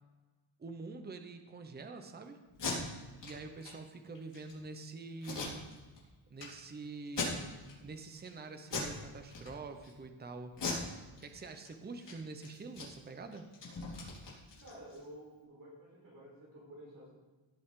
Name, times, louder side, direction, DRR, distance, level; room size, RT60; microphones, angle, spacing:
voice 1, 0.6-2.4 3.2-5.6 6.3-10.6 11.2-13.5, right 3 dB, 20° right, 7 dB, 0.7 m, -46 dB
Packing tape duct tape, 2.5-2.7 3.2-3.3 3.6-3.7 4.1-4.5 5.2-6.0 6.4-6.5 7.0-7.7 8.1-8.3 8.7-9.0 9.3-9.9 10.5-11.7 12.0-12.1 12.4-15.0, left 4 dB, 60° left, 4.3 m, -40 dB
voice 2, 14.6-17.1, equal, 45° right, -6 dB, 4.1 m, -52 dB
17.0 x 8.4 x 3.7 m, 1.3 s
wide cardioid pair, 175°, 47 cm